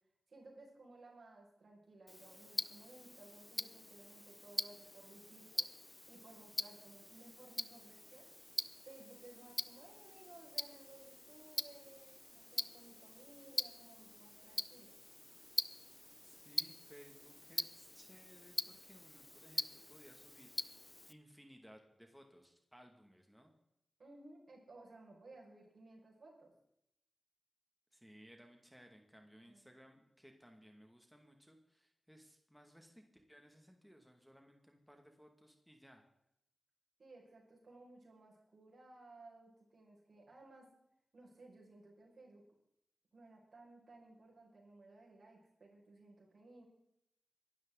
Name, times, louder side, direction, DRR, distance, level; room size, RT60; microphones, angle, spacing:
voice 1, 0.3-5.7 6.1-8.3 8.8-14.9 24.0-26.5 29.3-29.7 37.0-40.7 41.1-42.4 43.1-46.7, right 2 dB, 70° right, -2 dB, 6.3 m, -59 dB
Tick-tock, 2.1-21.1, left 1 dB, 20° left, 0.7 m, -44 dB
voice 2, 16.2-20.8 21.1-23.5 27.9-36.0, equal, ahead, 3 dB, 2.4 m, -61 dB
23.5 x 12.5 x 4.1 m, 0.79 s
wide cardioid pair, 70°, 0 cm